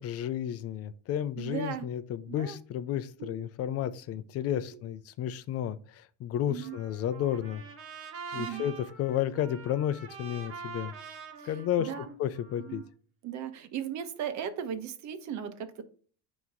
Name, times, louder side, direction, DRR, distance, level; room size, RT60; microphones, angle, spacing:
voice 1, 0.0-7.6 8.3-10.9 11.4-11.9 12.2-12.8, left 10 dB, 45° left, 0.5 m, -32 dB
voice 2, 1.4-1.9 2.3-2.6 3.2-3.3 6.5-6.8 8.4-8.6 11.4-11.5 11.8-12.1 12.6-12.8 13.2-15.8, right 8 dB, 55° right, 1.1 m, -37 dB
Trumpet, 6.6-12.9, right 6 dB, 40° right, 1.9 m, -45 dB
9.2 x 3.1 x 3.8 m
cardioid pair, 120°, 34 cm